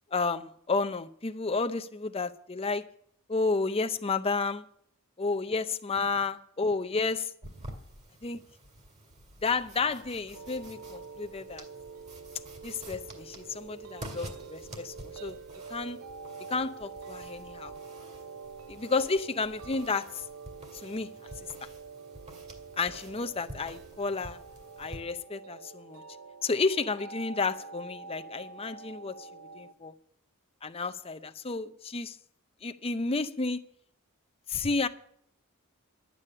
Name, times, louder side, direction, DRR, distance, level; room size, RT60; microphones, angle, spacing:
voice 1, 0.1-2.8 3.3-4.6 5.2-7.3 8.2-8.4 9.4-11.6 12.6-15.4 15.7-16.0 16.5-17.7 18.7-20.2 20.8-21.1 22.8-24.4 24.8-26.0 26.4-29.3 29.5-29.9 30.6-32.2 32.6-33.6 34.5-34.9, left 4 dB, 25° left, 0.6 m, -31 dB
sound 1, 7.4-25.0, right 1 dB, 30° right, 2.1 m, -49 dB
sound 2, 10.3-29.7, right 4 dB, 65° right, 0.6 m, -46 dB
11.5 x 8.4 x 8.6 m
head